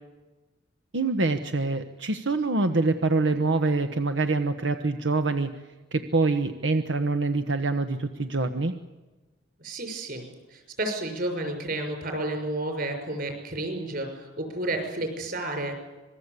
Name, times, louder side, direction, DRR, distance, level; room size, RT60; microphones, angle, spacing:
voice 1, 0.9-5.5 5.9-8.7, right 3 dB, 85° right, 8 dB, 1.2 m, -25 dB
voice 2, 9.6-15.7, right 1 dB, 50° right, 5 dB, 6.1 m, -31 dB
26.0 x 20.5 x 8.3 m, 1.2 s
head